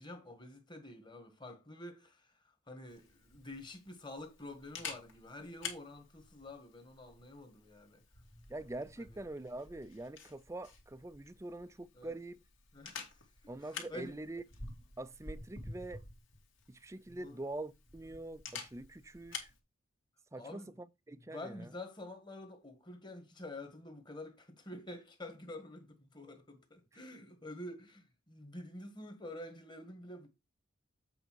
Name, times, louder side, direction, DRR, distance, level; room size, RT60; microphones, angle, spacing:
voice 1, 0.0-2.3 2.7-8.0 9.0-9.2 12.0-12.2 12.7-13.2 13.6-14.2 17.2-17.4 20.3-20.7 21.3-30.3, left 1 dB, 20° left, 1.5 m, -48 dB
Camera, 2.9-19.6, left 4 dB, 70° left, 2.1 m, -50 dB
voice 2, 8.5-12.4 13.5-14.4 15.0-16.0 16.7-19.5 20.3-21.7, right 2 dB, 15° right, 0.4 m, -44 dB
8.0 x 4.8 x 4.6 m
head